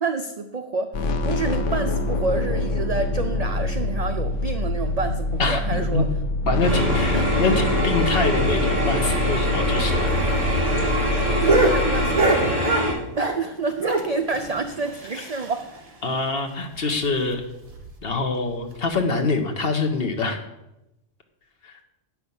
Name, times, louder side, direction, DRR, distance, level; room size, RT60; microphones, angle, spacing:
voice 1, 0.0-6.1 7.1-7.2 11.4-12.6 13.2-15.7, right 4 dB, 50° right, 7 dB, 0.5 m, -28 dB
sound 1, 0.9-12.1, left 2 dB, 75° left, 1.1 m, -25 dB
voice 2, 5.4-6.0 6.5-10.1 10.5-10.6 16.0-17.4 18.0-20.4 21.6-21.7, left 3 dB, 50° left, 4 dB, 1.3 m, -25 dB
sound 2, 6.6-12.9, equal, 35° left, 3.5 m, -24 dB
sound 3, 10.1-13.5 13.8-15.8 16.1-16.2 16.5-16.6 16.9-17.1 17.6-17.9 18.8-18.9, right 2 dB, 30° right, 1.0 m, -24 dB
8.1 x 5.9 x 7.0 m, 0.91 s
omnidirectional pair, 1.3 m